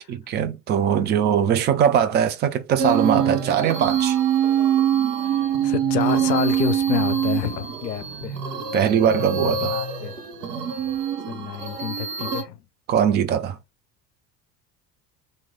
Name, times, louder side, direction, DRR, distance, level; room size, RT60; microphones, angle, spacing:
voice 1, 0.1-4.2 8.7-9.8 12.9-13.6, right 8 dB, 25° right, 0.4 m, -21 dB
sound 1, 2.8-12.4, right 8 dB, 75° right, 0.9 m, -24 dB
voice 2, 5.6-8.4 9.4-10.2 11.3-12.6, left 11 dB, 80° left, 0.6 m, -28 dB
3.0 x 2.7 x 3.6 m
figure-of-eight pair, 65°, 49 cm